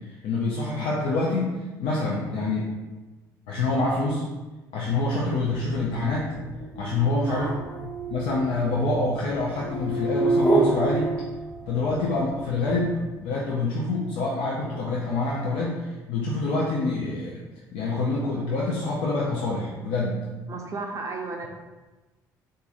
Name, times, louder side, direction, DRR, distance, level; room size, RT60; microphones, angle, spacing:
voice 1, 0.2-1.5 1.8-2.7 3.5-4.2 4.7-6.3 6.8-7.5 7.8-11.1 11.7-17.3 17.7-20.2, left 3 dB, 60° left, -5 dB, 0.5 m, -26 dB
sound 1, 5.5-12.0, right 2 dB, 30° left, 1.3 m, -28 dB
voice 2, 7.3-7.6 20.5-21.5, right 3 dB, 30° right, 1 dB, 0.5 m, -33 dB
3.8 x 2.7 x 2.5 m, 1.2 s
figure-of-eight pair, 50°, 10 cm